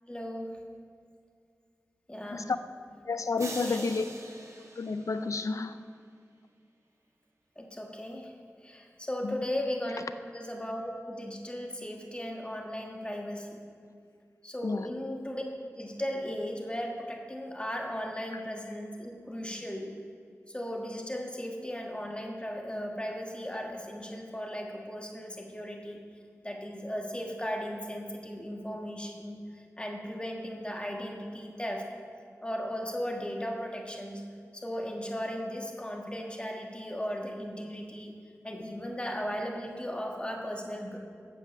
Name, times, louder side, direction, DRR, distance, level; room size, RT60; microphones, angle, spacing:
voice 1, 0.1-0.6 2.1-2.5 3.6-3.9 7.6-8.3 8.6-10.1 10.3-13.6 14.4-15.4 15.8-19.9 20.5-26.0 26.4-29.4 29.8-31.9 32.4-34.3 34.5-38.1 38.4-41.0, equal, 20° left, 1 dB, 1.5 m, -36 dB
voice 2, 3.1-4.1 4.8-5.8 9.2-9.4 14.6-14.9, left 4 dB, 70° left, 11 dB, 0.5 m, -30 dB
sound 1, 3.4-5.7, right 2 dB, 65° right, 1.2 m, -44 dB
9.0 x 7.4 x 6.8 m, 2.2 s
wide cardioid pair, 60°, 6 cm